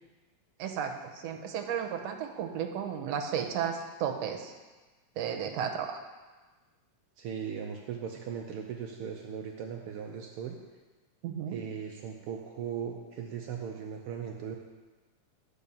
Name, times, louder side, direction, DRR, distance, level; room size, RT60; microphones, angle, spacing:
voice 1, 0.6-4.5 5.2-6.0 11.2-11.6, right 8 dB, 70° right, 3 dB, 1.8 m, -34 dB
voice 2, 7.2-10.6 11.5-14.6, right 7 dB, 85° right, 1 dB, 1.2 m, -38 dB
11.0 x 5.1 x 7.0 m, 1.3 s
omnidirectional pair, 3.3 m